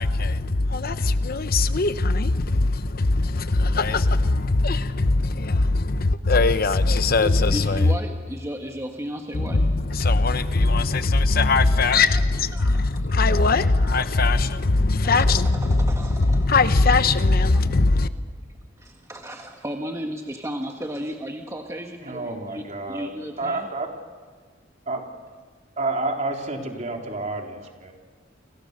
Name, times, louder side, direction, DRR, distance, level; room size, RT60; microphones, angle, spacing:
voice 1, 0.0-7.9 9.3-18.1, left 3 dB, 55° left, 0.9 m, -20 dB
voice 2, 7.2-9.6 11.9-12.0 12.5-13.1 13.8-14.0 15.2-16.5 17.5-17.8 18.8-23.7, equal, 15° right, 1.5 m, -34 dB
voice 3, 22.0-23.1 23.4-24.0 24.9-25.0 25.8-27.9, right 2 dB, 40° right, 3.5 m, -29 dB
30.0 x 26.0 x 6.7 m
head